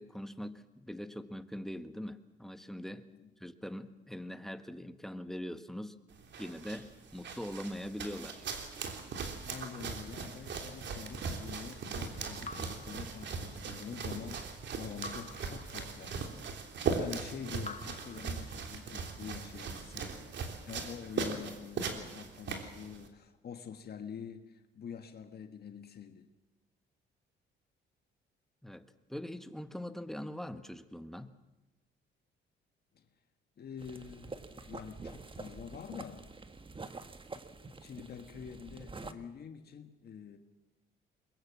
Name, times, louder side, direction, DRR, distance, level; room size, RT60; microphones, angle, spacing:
voice 1, 0.0-3.0 3.4-6.0 6.4-8.5 28.6-31.3, equal, ahead, 1.4 m, -42 dB
sound 1, 6.1-23.1, right 5 dB, 65° right, 3.4 m, -39 dB
voice 2, 9.5-16.2 16.9-20.3 20.7-26.3 32.9-33.1 33.6-34.3 34.7-36.3 37.8-40.4, left 7 dB, 55° left, 1.7 m, -46 dB
Raindrop / Drip, 12.4-13.8 15.0-16.4 17.6-19.0, left 4 dB, 35° left, 1.9 m, -49 dB
sound 2, 33.8-39.1, right 3 dB, 25° right, 1.6 m, -47 dB
22.0 x 22.0 x 7.5 m
cardioid pair, 90°, 20 cm